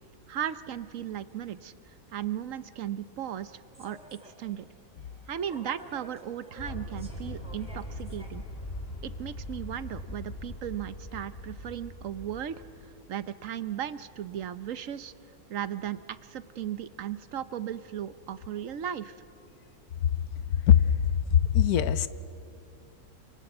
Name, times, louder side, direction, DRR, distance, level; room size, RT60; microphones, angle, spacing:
voice 1, 0.3-1.7 2.1-4.7 5.3-8.4 9.0-15.1 15.5-19.2, right 10 dB, 65° right, 14 dB, 1.1 m, -36 dB
Human voice / Subway metro underground, 3.7-9.5, equal, 5° right, 4.2 m, -53 dB
Aircraft, 6.6-12.9, left 1 dB, 40° left, 1.9 m, -41 dB
voice 2, 21.3-22.1, left 9 dB, 85° left, 14 dB, 1.3 m, -20 dB
27.0 x 27.0 x 7.9 m, 2.7 s
omnidirectional pair, 1.6 m